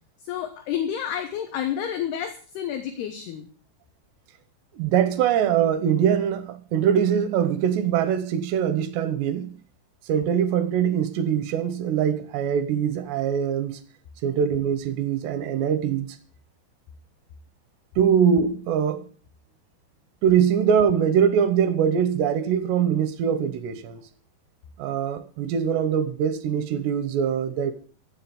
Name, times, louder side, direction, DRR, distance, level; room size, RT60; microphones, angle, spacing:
voice 1, 0.2-3.5, left 9 dB, 70° left, 2.7 m, -30 dB
voice 2, 4.7-9.5 10.1-13.8 14.2-16.1 18.0-19.0 20.2-24.0 24.8-27.7, right 8 dB, 75° right, 3.0 m, -23 dB
15.5 x 7.7 x 7.1 m
omnidirectional pair, 5.5 m